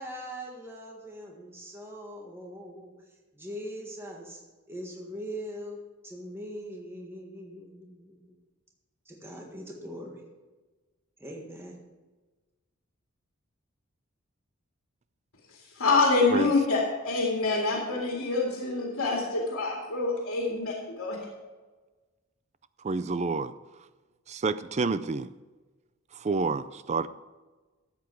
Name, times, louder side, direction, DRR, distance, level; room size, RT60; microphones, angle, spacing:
voice 1, 0.0-2.9 3.3-4.4 4.7-5.8 6.0-8.4 9.1-10.2 11.2-11.8, equal, 10° right, -1 dB, 1.6 m, -41 dB
voice 2, 15.8-21.2, left 3 dB, 85° left, -2 dB, 2.1 m, -26 dB
voice 3, 22.8-23.5 24.3-25.3 26.2-27.1, right 4 dB, 30° right, 14 dB, 0.4 m, -28 dB
13.0 x 8.3 x 4.7 m, 1.3 s
head